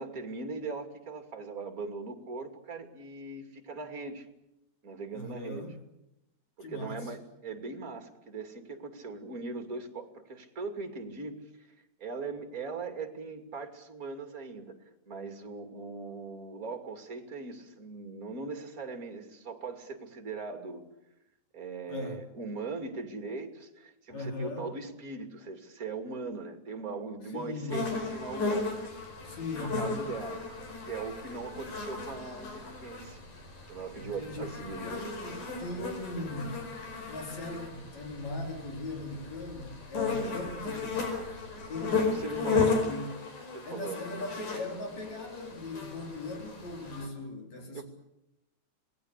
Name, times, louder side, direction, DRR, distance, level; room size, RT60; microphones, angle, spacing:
voice 1, 0.0-4.3 4.8-5.7 6.6-11.7 12.0-14.8 15.1-20.8 21.5-28.8 29.2-29.3 29.6-30.4 30.9-33.2 33.7-34.9 40.1-40.4 41.9-42.8 43.5-44.0 47.7-47.8, right 4 dB, 30° right, 6 dB, 2.7 m, -40 dB
voice 2, 5.1-5.7 6.6-7.1 21.9-22.2 24.1-24.7 27.3-27.8 29.2-30.0 34.0-34.5 34.8-36.6 37.1-40.9 41.7-47.8, left 2 dB, 60° left, 2 dB, 5.7 m, -39 dB
sound 1, 27.7-47.1, left 4 dB, 85° left, 6.3 m, -35 dB
26.5 x 19.5 x 8.2 m, 0.87 s
omnidirectional pair, 3.6 m